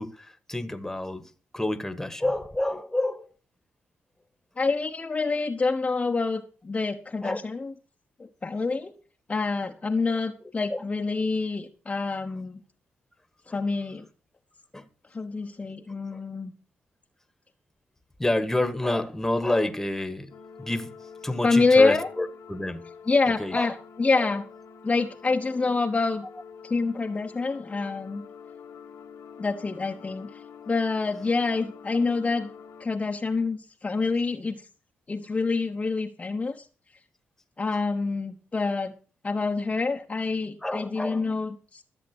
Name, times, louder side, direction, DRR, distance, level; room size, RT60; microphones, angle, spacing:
voice 1, 0.0-3.3 7.2-7.4 10.7-10.8 13.5-13.6 14.7-14.9 16.1-16.2 18.2-20.3 20.6-22.9 23.4-23.7 24.1-24.3 40.6-41.3, left 1 dB, 10° left, 1.6 m, -29 dB
voice 2, 4.6-7.7 8.4-8.9 9.3-12.6 13.5-14.1 15.1-16.5 21.4-22.1 23.1-24.4 24.8-26.3 26.6-28.2 29.4-30.4 30.7-32.5 32.8-34.6 35.1-36.7 37.6-38.9 39.2-41.8, left 3 dB, 30° left, 1.0 m, -26 dB
sound 1, 20.3-32.9, left 6 dB, 85° left, 1.7 m, -47 dB
14.0 x 7.4 x 6.1 m
cardioid pair, 90°, 5 cm